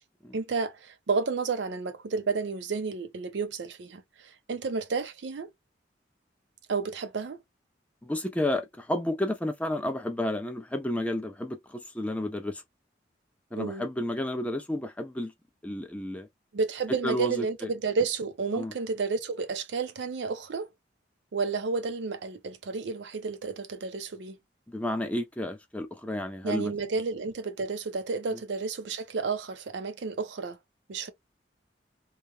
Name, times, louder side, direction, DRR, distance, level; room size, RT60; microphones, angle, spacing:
voice 1, 0.3-5.5 6.7-7.4 13.6-13.9 16.5-20.7 21.3-24.4 26.4-30.6 30.9-31.1, right 4 dB, 75° right, 0.5 m, -31 dB
voice 2, 8.0-12.6 13.5-15.3 15.6-16.3 17.0-17.5 18.5-18.7 24.7-26.7 28.3-28.4, left 1 dB, 5° left, 0.4 m, -31 dB
2.3 x 2.1 x 2.8 m
head